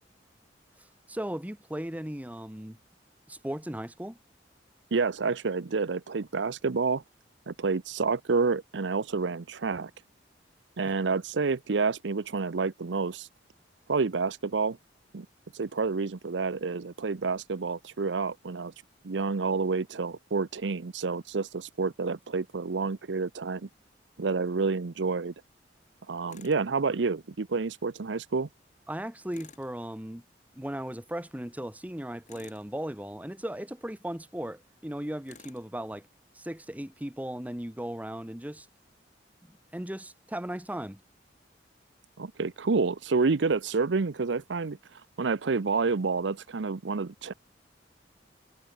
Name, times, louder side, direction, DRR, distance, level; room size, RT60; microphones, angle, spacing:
voice 1, 1.1-2.8 3.3-4.2 10.9-11.0 28.9-30.2 30.5-36.1 36.3-38.7 39.4-41.0, right 1 dB, 10° right, 1.3 m, -37 dB
voice 2, 4.9-7.0 7.5-9.9 10.8-13.3 13.9-14.8 15.1-15.3 15.5-18.7 19.0-23.7 24.2-25.3 26.1-28.5 42.2-44.8 45.2-47.3, right 4 dB, 80° right, 0.7 m, -29 dB
Tools, 26.3-26.6 29.3-29.7 32.2-32.7 35.2-35.7, left 5 dB, 45° left, 4.9 m, -52 dB
head